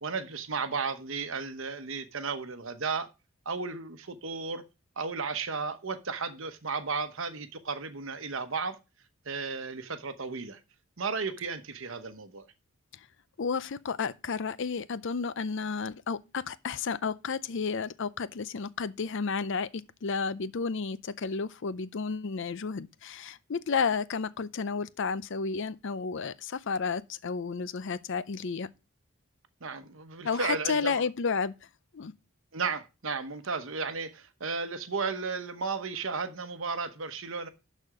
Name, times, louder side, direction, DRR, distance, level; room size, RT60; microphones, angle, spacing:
voice 1, 0.0-3.1 3.4-4.6 5.0-8.8 9.3-10.6 11.0-12.4 29.6-31.0 32.5-37.5, right 4 dB, 60° right, 1.0 m, -34 dB
voice 2, 13.4-28.7 30.2-31.5 31.9-32.1, left 5 dB, 55° left, 0.5 m, -32 dB
11.5 x 4.3 x 4.8 m
head